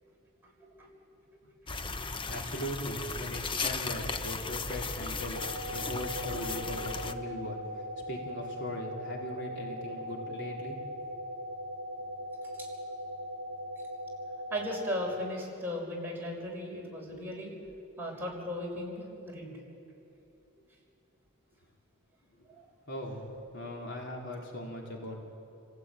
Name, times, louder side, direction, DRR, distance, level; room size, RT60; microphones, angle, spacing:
voice 1, 0.4-0.9 1.3-1.4 12.4-12.7 14.5-17.5 18.0-19.5 22.5-22.7, left 1 dB, 10° right, -2 dB, 5.9 m, -37 dB
sound 1, 1.7-7.1, left 4 dB, 25° left, 0.8 m, -36 dB
voice 2, 2.3-5.4 5.7-11.0 22.9-25.2, left 1 dB, 60° left, -1 dB, 4.2 m, -39 dB
sound 2, 5.3-15.3, equal, 70° right, 1.1 m, -40 dB
30.0 x 18.0 x 9.4 m, 2.7 s
head